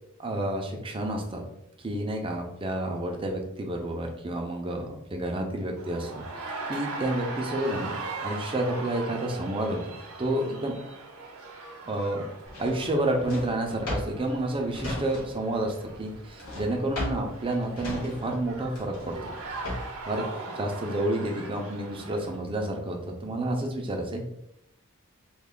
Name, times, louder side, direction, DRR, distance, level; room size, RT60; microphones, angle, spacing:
voice 1, 0.2-1.4 1.8-6.2 6.7-8.0 8.2-9.8 10.2-10.8 11.9-12.3 12.6-19.2 20.1-24.2, right 1 dB, 25° right, 2 dB, 0.5 m, -30 dB
sound 1, 5.8-22.4, right 3 dB, 80° right, 0.7 m, -40 dB
Drawer open or close, 12.5-15.6 15.8-20.1, left 1 dB, 75° left, 1.3 m, -36 dB
3.2 x 2.3 x 3.6 m, 0.79 s
head